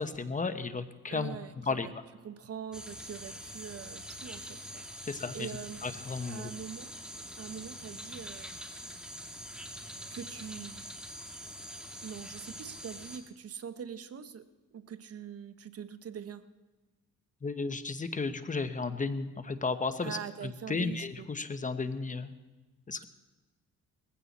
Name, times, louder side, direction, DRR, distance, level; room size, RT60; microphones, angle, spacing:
voice 1, 0.0-1.4 1.7-1.9 5.1-5.5 5.8-6.5 17.4-22.3 22.9-23.0, left 4 dB, 25° left, 10 dB, 1.1 m, -34 dB
voice 2, 1.1-1.9 2.2-5.8 6.3-7.0 7.4-8.6 10.1-11.0 12.0-14.4 14.7-16.4 20.0-21.3, right 8 dB, 50° right, 12 dB, 1.0 m, -43 dB
sound 1, 2.7-13.2, equal, 5° right, 2.2 m, -44 dB
20.5 x 15.5 x 4.2 m, 1.2 s
cardioid pair, 90°, 30 cm